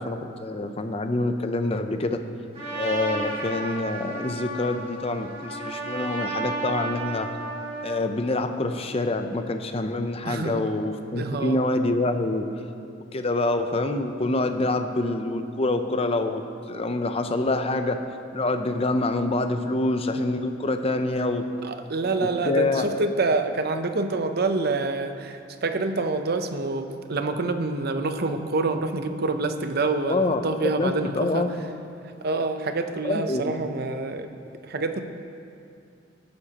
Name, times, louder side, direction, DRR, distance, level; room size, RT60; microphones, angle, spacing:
voice 1, 0.0-2.2 2.7-7.3 7.8-12.5 13.1-16.4 16.7-18.0 18.3-21.4 22.2-22.9 30.0-31.5 33.0-33.7, left 2 dB, 30° left, 7 dB, 0.6 m, -26 dB
Trumpet, 2.5-8.0, right 2 dB, 35° right, 3.1 m, -33 dB
voice 2, 10.2-10.6 11.1-11.6 21.6-31.5 32.2-34.3 34.6-35.0, right 3 dB, 55° right, 7 dB, 0.7 m, -27 dB
19.0 x 9.7 x 2.9 m, 2.5 s
head